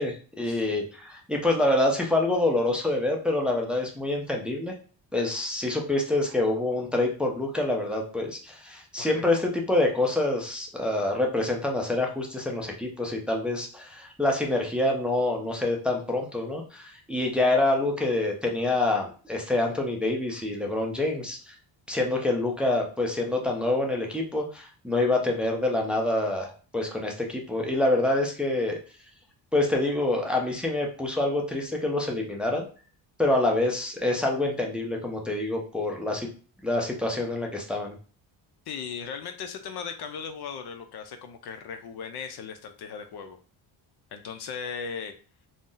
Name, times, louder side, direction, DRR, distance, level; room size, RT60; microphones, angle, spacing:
voice 1, 0.0-4.7 5.1-21.5 21.9-28.8 29.5-32.6 33.2-36.3 36.6-37.9, left 2 dB, ahead, 0 dB, 0.5 m, -26 dB
voice 2, 38.7-43.4 44.1-45.1, left 6 dB, 60° left, 7 dB, 0.5 m, -37 dB
2.5 x 2.0 x 3.7 m, 0.39 s
cardioid pair, 100°, 47 cm